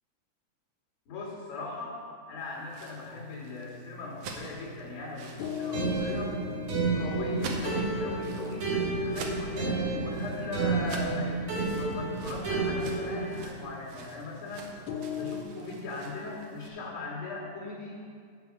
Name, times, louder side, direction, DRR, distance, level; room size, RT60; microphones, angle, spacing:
voice 1, 1.1-2.0 2.3-6.4 7.0-11.4 11.7-14.7 15.2-18.0, left 3 dB, 45° left, -7 dB, 2.8 m, -39 dB
sound 1, 2.5-16.7, right 3 dB, 70° right, 1.7 m, -45 dB
sound 2, 3.2-15.4, left 6 dB, 90° left, 2.1 m, -43 dB
sound 3, 5.7-13.4, right 3 dB, 85° right, 3.6 m, -31 dB
8.8 x 6.1 x 6.0 m, 2.1 s
omnidirectional pair, 3.5 m